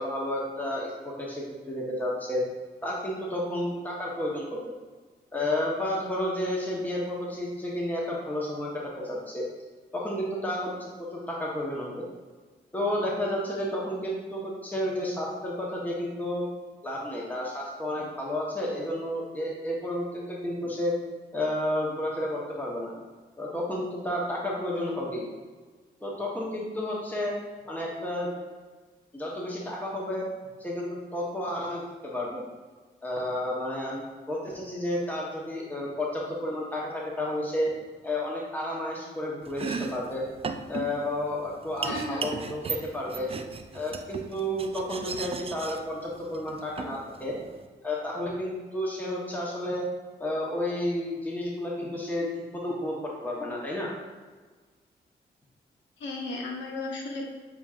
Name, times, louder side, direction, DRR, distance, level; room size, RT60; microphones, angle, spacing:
voice 1, 0.0-2.4 2.8-4.7 5.3-9.4 9.9-12.0 12.7-16.4 16.8-20.9 21.3-22.9 23.4-25.2 26.0-27.3 27.6-28.3 29.1-30.2 30.6-32.4 33.0-37.7 38.0-40.2 40.7-43.3 43.7-47.3 47.8-49.8 50.2-52.3 52.5-53.9, left 1 dB, 10° left, -4 dB, 1.0 m, -31 dB
Domestic sounds home sounds, 39.4-47.6, right 5 dB, 30° right, 0.4 m, -37 dB
voice 2, 41.8-42.3 56.0-57.2, left 2 dB, 90° left, 0 dB, 0.8 m, -34 dB
6.8 x 2.8 x 2.4 m, 1.4 s
cardioid pair, 60°, 18 cm